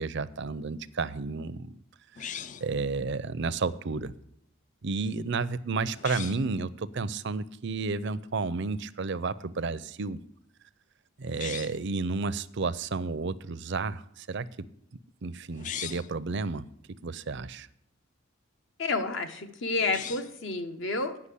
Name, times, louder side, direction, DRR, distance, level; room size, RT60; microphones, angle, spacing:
voice 1, 0.0-1.7 2.6-4.1 4.8-10.2 11.2-14.5 15.2-16.7 17.0-17.7, right 4 dB, 55° right, 0.5 m, -31 dB
sound 1, 2.2-2.8 5.9-6.5 11.3-11.9 15.5-16.2 19.8-20.4, left 8 dB, 35° left, 0.4 m, -39 dB
voice 2, 18.8-21.2, left 3 dB, 65° left, 1.2 m, -30 dB
9.7 x 5.9 x 8.3 m
head